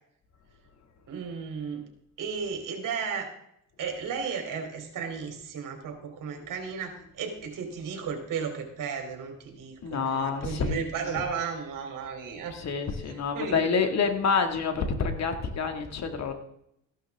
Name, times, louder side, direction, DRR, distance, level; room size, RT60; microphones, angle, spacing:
voice 1, 1.1-1.9 2.2-3.3 3.8-12.6 13.0-13.7, right 6 dB, 75° right, 4 dB, 3.5 m, -34 dB
voice 2, 9.8-10.8 11.1-11.2 12.5-16.3, left 5 dB, 55° left, 6 dB, 2.2 m, -27 dB
15.0 x 11.5 x 3.6 m, 0.76 s
cardioid pair, 95°, 32 cm